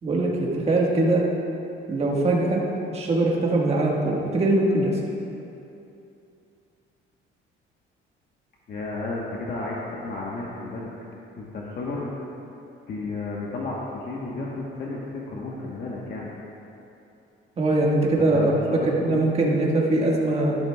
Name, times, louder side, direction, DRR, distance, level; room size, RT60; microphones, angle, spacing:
voice 1, 0.0-1.2 1.9-2.6 2.9-4.9 17.6-20.6, right 2 dB, 30° right, -3 dB, 1.4 m, -22 dB
voice 2, 8.7-10.9 11.4-12.1 12.9-16.3 18.2-19.2, left 3 dB, 45° left, -4 dB, 1.1 m, -33 dB
12.0 x 11.5 x 2.3 m, 2.7 s
cardioid pair, 135°, 21 cm